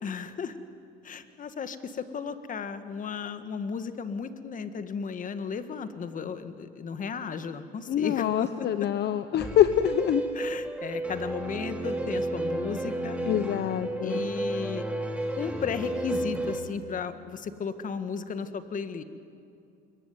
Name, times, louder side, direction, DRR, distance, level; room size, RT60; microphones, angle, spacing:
voice 1, 0.0-0.6 1.0-8.9 10.3-13.2 14.0-14.8 15.4-19.0, left 6 dB, 40° left, 10 dB, 1.8 m, -35 dB
voice 2, 7.9-10.2 13.3-14.2, left 10 dB, 55° left, 11 dB, 1.0 m, -25 dB
sound 1, 9.4-16.6, right 1 dB, 5° right, 3.0 m, -32 dB
26.0 x 22.5 x 9.6 m, 2.6 s
supercardioid pair, 95°, 21 cm